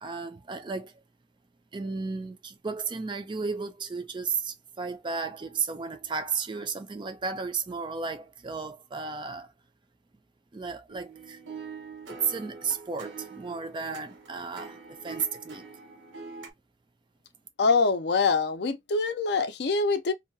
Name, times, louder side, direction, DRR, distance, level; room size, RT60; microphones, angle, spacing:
voice 1, 0.0-0.9 1.7-9.5 10.5-11.4 12.1-15.7, right 5 dB, 25° right, 0.3 m, -33 dB
sound 1, 10.9-16.5, right 4 dB, 80° right, 0.7 m, -44 dB
voice 2, 17.6-20.1, left 4 dB, 60° left, 0.4 m, -24 dB
2.7 x 2.3 x 2.6 m
head